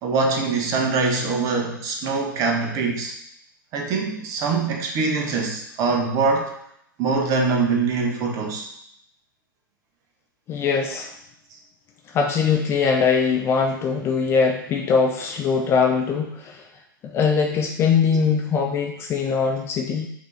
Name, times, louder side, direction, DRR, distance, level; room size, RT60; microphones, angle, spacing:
voice 1, 0.0-3.1 3.7-6.5 7.0-8.7, right 4 dB, 30° right, 2 dB, 0.8 m, -23 dB
voice 2, 10.5-11.1 12.1-16.6 17.0-20.1, left 5 dB, 20° left, 2 dB, 0.3 m, -21 dB
5.1 x 2.7 x 3.2 m, 0.74 s
figure-of-eight pair, 105°, 12 cm